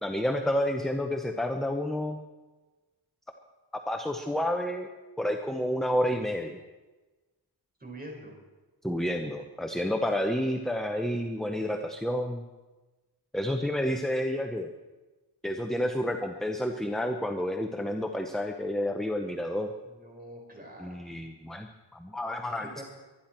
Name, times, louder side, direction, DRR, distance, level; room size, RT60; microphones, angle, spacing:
voice 1, 0.0-2.2 3.9-4.9 5.2-6.6 8.8-12.4 13.3-14.7 15.4-19.7 20.8-22.8, left 1 dB, ahead, 4 dB, 0.8 m, -30 dB
voice 2, 7.8-8.4 19.8-21.1 22.6-22.8, right 1 dB, 20° right, 0 dB, 4.9 m, -44 dB
23.5 x 10.5 x 4.5 m, 1.2 s
wide cardioid pair, 120°, 42 cm